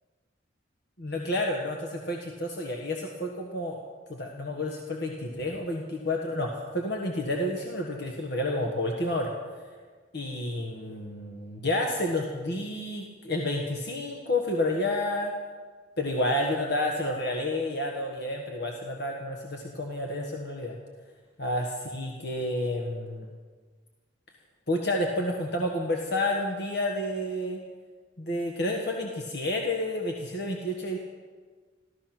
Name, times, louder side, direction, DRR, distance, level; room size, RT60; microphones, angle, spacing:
voice 1, 1.0-3.8 4.1-9.3 10.1-15.3 16.0-20.8 21.4-23.3 24.7-27.6 28.2-31.0, left 1 dB, 55° left, 1 dB, 1.4 m, -30 dB
14.0 x 14.0 x 6.0 m, 1.5 s
head